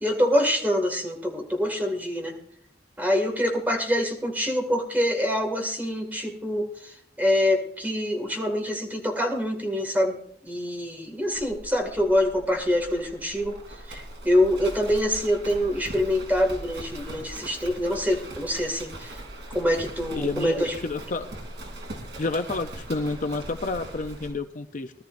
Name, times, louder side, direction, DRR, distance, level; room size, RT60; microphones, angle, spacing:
voice 1, 0.0-2.4 3.0-13.6 13.9-19.2 19.5-20.8, left 1 dB, 10° right, 3 dB, 2.1 m, -25 dB
Livestock farm animals working animals, 11.3-24.4, right 1 dB, 85° right, 3.0 m, -40 dB
voice 2, 20.1-21.3 22.2-24.9, left 3 dB, 45° left, 7 dB, 0.5 m, -30 dB
20.5 x 13.0 x 2.6 m, 0.65 s
head